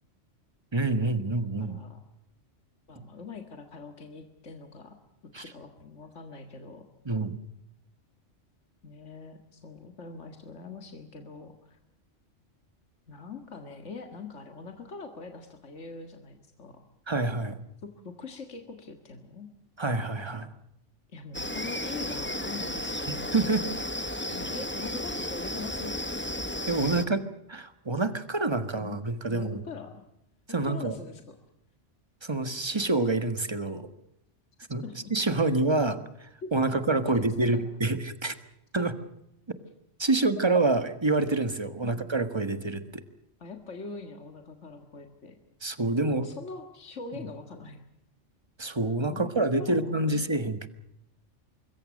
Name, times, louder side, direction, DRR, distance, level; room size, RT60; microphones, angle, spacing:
voice 1, 0.7-1.8 5.3-5.4 7.1-7.4 17.1-17.6 19.8-20.5 23.3-23.7 26.7-29.6 30.5-31.0 32.2-33.9 34.7-34.8 35.1-36.0 36.5-38.4 38.7-38.9 40.0-43.0 45.6-46.3 48.6-50.7, right 2 dB, 20° right, 10 dB, 1.6 m, -27 dB
voice 2, 1.6-2.0 2.9-5.0 5.4-6.9 8.8-11.8 13.1-16.9 17.8-19.5 21.1-23.3 24.3-26.0 28.8-30.0 30.6-31.4 34.8-35.1 35.4-35.5 36.4-37.6 41.8-42.1 43.4-45.4 46.0-47.8 49.1-49.3 49.6-50.2, left 4 dB, 75° left, 5 dB, 2.2 m, -43 dB
sound 1, 21.3-27.1, left 1 dB, 10° left, 1.3 m, -33 dB
26.0 x 21.5 x 6.4 m, 0.82 s
omnidirectional pair, 1.2 m